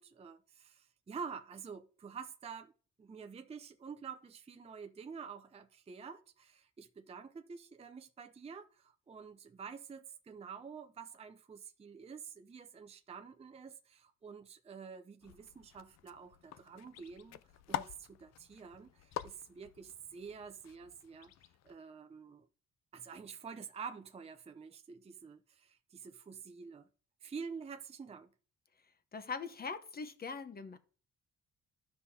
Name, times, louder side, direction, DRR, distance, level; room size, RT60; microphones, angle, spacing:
voice 1, 0.0-2.7 3.0-17.4 17.7-21.3 21.6-22.5 22.9-26.9 27.2-28.3, right 6 dB, 20° right, 0.5 m, -48 dB
sound 1, 15.2-21.8, left 12 dB, 60° left, 0.5 m, -47 dB
voice 2, 29.1-30.8, left 5 dB, 30° left, 0.9 m, -41 dB
13.0 x 5.6 x 2.8 m
cardioid pair, 90°, 30 cm